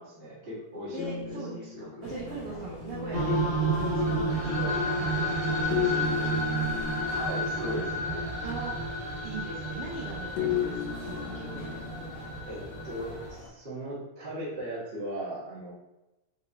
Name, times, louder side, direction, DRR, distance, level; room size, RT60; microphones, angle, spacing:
voice 1, 0.0-2.1 7.0-8.5 12.4-15.7, right 1 dB, 70° right, -8 dB, 0.5 m, -38 dB
voice 2, 0.9-3.4 3.9-6.1 8.4-8.7 9.2-11.8, right 4 dB, 85° right, -6 dB, 1.3 m, -40 dB
sound 1, 1.0-4.1 5.7-8.6 10.4-12.5, left 8 dB, 85° left, 2.2 m, -36 dB
sound 2, 2.0-13.5, left 1 dB, 65° left, 1.6 m, -44 dB
sound 3, 3.1-13.3, right 1 dB, 45° right, 1.9 m, -30 dB
6.2 x 2.8 x 2.5 m, 0.98 s
omnidirectional pair, 3.8 m